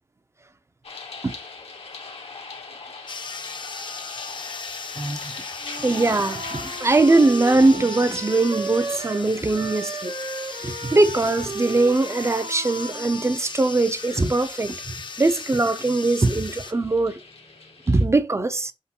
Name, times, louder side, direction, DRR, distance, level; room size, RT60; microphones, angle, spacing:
sound 1, 0.8-18.0, left 4 dB, 70° left, 1.0 m, -42 dB
sound 2, 3.1-16.7, left 4 dB, 50° left, 0.5 m, -37 dB
voice 1, 5.0-5.3 5.8-10.1 10.6-17.2 17.9-18.7, right 2 dB, 25° right, 0.5 m, -21 dB
Wind instrument woodwind instrument, 5.6-9.3 9.5-13.4, right 3 dB, 85° right, 1.1 m, -35 dB
5.0 x 3.7 x 2.8 m
wide cardioid pair, 70°, 10 cm